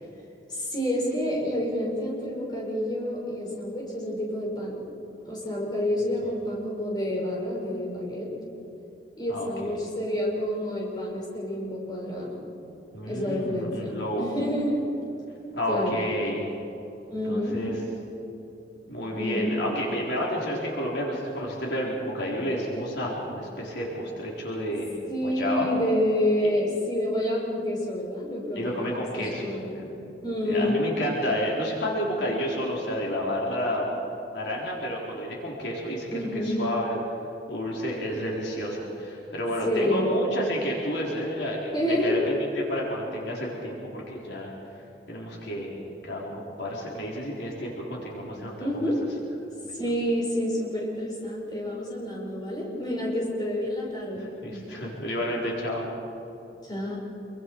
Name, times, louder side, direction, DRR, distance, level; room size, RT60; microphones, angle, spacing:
voice 1, 0.5-4.8 5.2-8.3 9.2-12.4 13.1-14.8 15.7-16.0 17.1-17.6 19.1-19.6 25.1-28.9 29.2-29.9 30.2-30.9 36.1-36.5 39.6-40.1 41.7-42.2 48.6-49.0 49.7-54.7 56.6-57.0, left 1 dB, 25° left, -4 dB, 5.8 m, -28 dB
voice 2, 9.3-9.8 12.9-14.3 15.5-16.5 17.3-17.7 18.9-24.9 25.2-25.7 28.6-30.0 30.5-33.9 34.3-36.1 36.4-37.0 37.5-44.5 45.1-48.9 49.6-49.8 54.2-55.9, equal, 70° left, -3 dB, 4.2 m, -30 dB
27.0 x 24.0 x 4.8 m, 3.0 s
head